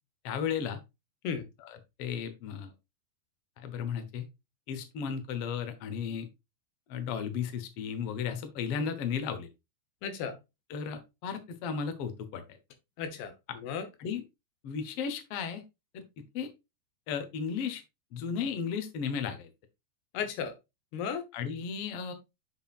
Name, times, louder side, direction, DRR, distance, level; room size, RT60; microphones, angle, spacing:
voice 1, 0.2-0.8 1.6-2.7 3.6-4.3 4.7-6.3 6.9-9.5 10.7-12.4 14.0-14.2 14.6-15.6 15.9-16.0 16.3-16.5 17.1-17.8 18.1-19.5 21.3-22.1, left 7 dB, 65° left, 8 dB, 1.5 m, -34 dB
voice 2, 10.0-10.4 13.0-13.9 20.1-20.5 20.9-21.2, left 7 dB, 85° left, 8 dB, 3.2 m, -35 dB
8.0 x 6.0 x 2.5 m, 0.23 s
omnidirectional pair, 4.4 m